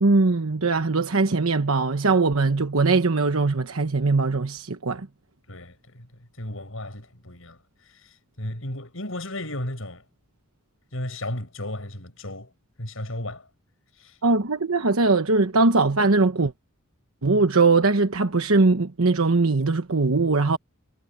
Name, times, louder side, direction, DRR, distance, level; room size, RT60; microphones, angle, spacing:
voice 1, 0.0-5.1 14.2-16.5 17.2-20.6, right 3 dB, 85° right, 1.1 m, -21 dB
voice 2, 5.5-10.0 10.9-12.5 12.8-13.5 13.9-14.2, left 1 dB, 70° left, 7.3 m, -35 dB
head